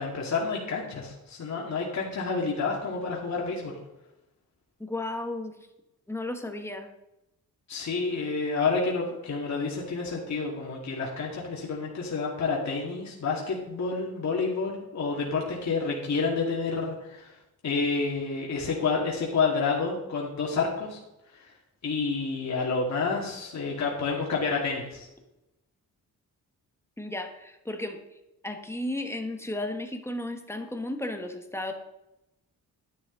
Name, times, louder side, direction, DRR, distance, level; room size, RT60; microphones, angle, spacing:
voice 1, 0.0-3.7 7.7-17.4 17.6-21.0 21.3-21.5 21.8-25.1, left 4 dB, 55° left, -2 dB, 2.2 m, -29 dB
voice 2, 4.8-5.6 6.1-6.9 27.0-28.0 28.4-31.7, left 1 dB, 5° left, 5 dB, 1.4 m, -34 dB
11.0 x 10.0 x 3.9 m, 0.92 s
cardioid pair, 105°, 34 cm